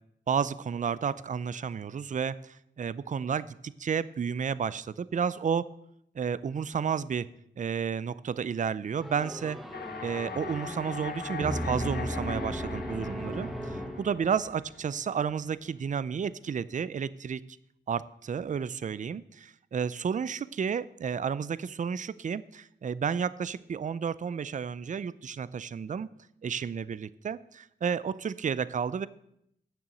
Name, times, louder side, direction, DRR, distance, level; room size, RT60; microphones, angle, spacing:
voice 1, 0.3-5.7 6.2-7.3 7.6-9.6 10.0-17.4 17.9-26.1 26.4-29.1, right 7 dB, 40° right, 18 dB, 0.4 m, -31 dB
sound 1, 9.0-14.6, equal, ahead, 1.2 m, -36 dB
sound 2, 9.7-15.7, left 6 dB, 60° left, 0.8 m, -42 dB
9.0 x 7.0 x 7.7 m, 0.75 s
wide cardioid pair, 85°, 19 cm